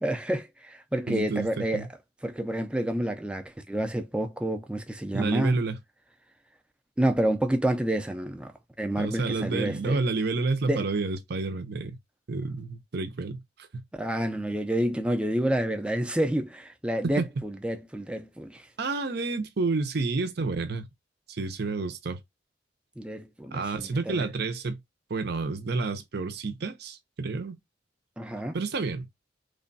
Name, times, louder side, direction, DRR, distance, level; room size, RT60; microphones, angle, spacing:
voice 1, 0.0-1.9 2.2-5.6 7.0-10.0 10.7-10.9 13.9-18.7 23.0-24.3 28.2-28.6, right 1 dB, 5° right, 0.4 m, -29 dB
voice 2, 1.1-1.9 5.1-5.8 9.0-12.0 12.3-13.8 17.2-17.3 18.8-20.8 21.3-22.2 23.5-24.8 25.1-27.6 28.5-29.1, right 3 dB, 55° right, 0.6 m, -29 dB
3.3 x 2.3 x 3.9 m
head